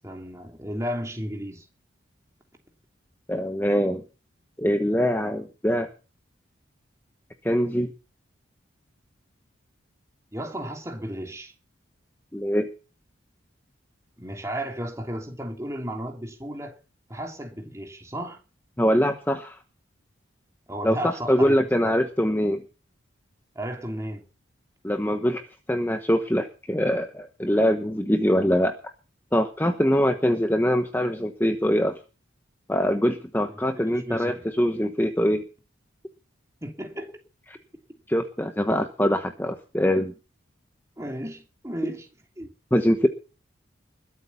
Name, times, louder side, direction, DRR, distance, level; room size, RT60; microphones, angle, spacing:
voice 1, 0.0-1.6 10.3-11.5 14.2-16.8 17.1-18.4 20.7-21.9 23.5-24.2 33.5-34.5 36.6-37.1 41.0-42.1 42.4-42.5, equal, 15° right, 3.0 m, -34 dB
voice 2, 3.3-4.0 4.6-5.9 7.4-7.9 12.3-12.7 18.8-19.6 20.8-22.6 24.8-25.4 25.7-28.7 29.3-32.0 32.7-35.4 38.1-40.1 42.7-43.1, equal, 10° left, 1.1 m, -23 dB
21.5 x 8.3 x 5.8 m
head